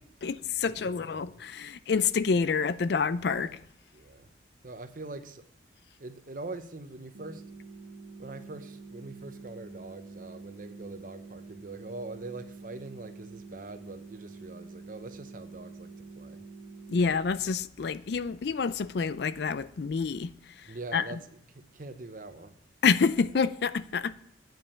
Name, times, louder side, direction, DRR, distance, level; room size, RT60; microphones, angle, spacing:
voice 1, 0.2-3.6 16.9-20.3 20.9-21.0 22.8-24.2, left 5 dB, 55° left, 0.4 m, -28 dB
voice 2, 0.9-1.4 3.3-3.6 3.9-4.3 4.6-5.4 6.0-7.4 8.2-16.5 20.7-22.6, right 2 dB, 45° right, 0.7 m, -43 dB
sound 1, 7.1-17.2, right 4 dB, 90° right, 0.9 m, -47 dB
9.0 x 5.4 x 7.0 m
head